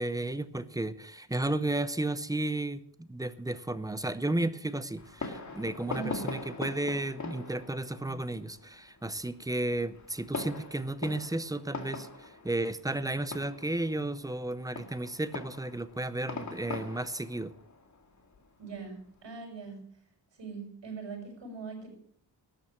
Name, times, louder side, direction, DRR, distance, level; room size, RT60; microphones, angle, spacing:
voice 1, 0.0-17.5, right 2 dB, 10° right, 14 dB, 0.6 m, -33 dB
Fireworks, 5.0-19.1, left 3 dB, 40° left, 2.1 m, -42 dB
voice 2, 5.9-6.2 18.6-19.8 20.4-21.9, right 4 dB, 80° right, 1 dB, 6.2 m, -41 dB
12.5 x 8.9 x 7.4 m, 0.62 s
wide cardioid pair, 130°, 43 cm